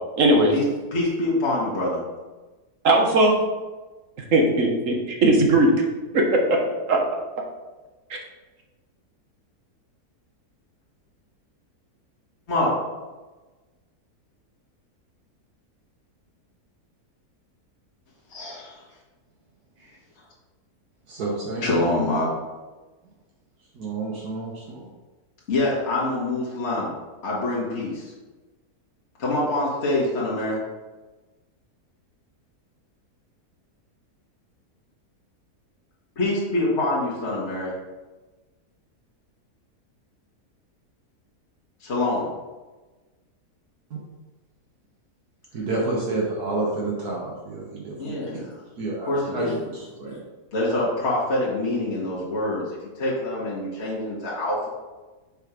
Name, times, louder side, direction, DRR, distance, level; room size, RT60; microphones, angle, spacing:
voice 1, 0.2-0.6 2.8-3.4 4.3-5.8 6.3-6.6 6.9-7.0, right 2 dB, 55° right, 1 dB, 1.3 m, -18 dB
voice 2, 0.9-2.0 12.5-12.7 18.3-18.9 21.6-22.3 25.5-26.9 27.2-28.1 29.2-30.6 36.2-37.7 41.8-42.3 48.0-48.4 49.1-49.6 50.5-54.7, left 2 dB, 45° left, -5 dB, 1.8 m, -25 dB
voice 3, 21.1-21.6 23.7-24.9 43.9-44.0 45.5-47.9 48.8-50.2, right 2 dB, 70° right, -3 dB, 1.6 m, -29 dB
6.7 x 4.3 x 4.9 m, 1.2 s
omnidirectional pair, 1.7 m